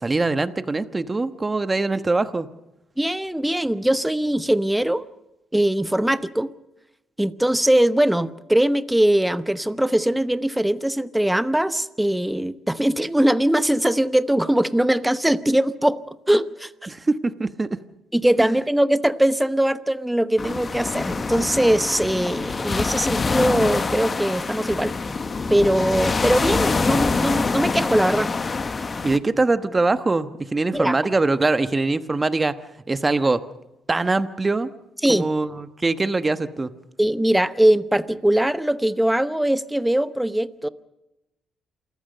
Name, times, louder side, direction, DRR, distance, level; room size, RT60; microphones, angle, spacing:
voice 1, 0.0-2.5 16.9-17.8 18.4-18.5 29.0-32.6 32.9-33.4 33.9-34.7 35.1-36.7, right 3 dB, 25° right, 11 dB, 1.2 m, -22 dB
voice 2, 3.0-5.0 5.5-6.5 7.2-16.9 18.1-24.9 25.5-28.3 30.7-31.0 35.0-35.3 37.0-40.7, right 1 dB, 5° right, 14 dB, 0.9 m, -21 dB
sound 1, 20.4-29.2, left 4 dB, 30° left, 1.0 m, -25 dB
27.5 x 14.5 x 6.7 m, 0.92 s
cardioid pair, 90°, 0 cm